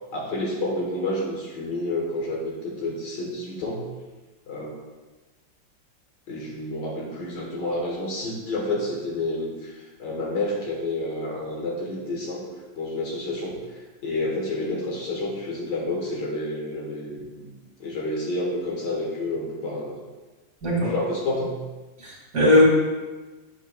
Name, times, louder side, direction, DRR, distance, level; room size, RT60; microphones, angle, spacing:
voice 1, 0.1-3.9 4.5-4.8 6.3-12.4 12.7-17.5 17.8-20.0 20.8-21.6, left 2 dB, 60° left, -2 dB, 1.8 m, -29 dB
voice 2, 20.6-20.9 22.0-22.6, left 1 dB, 50° right, -5 dB, 2.6 m, -19 dB
8.1 x 7.3 x 2.3 m, 1.3 s
omnidirectional pair, 2.2 m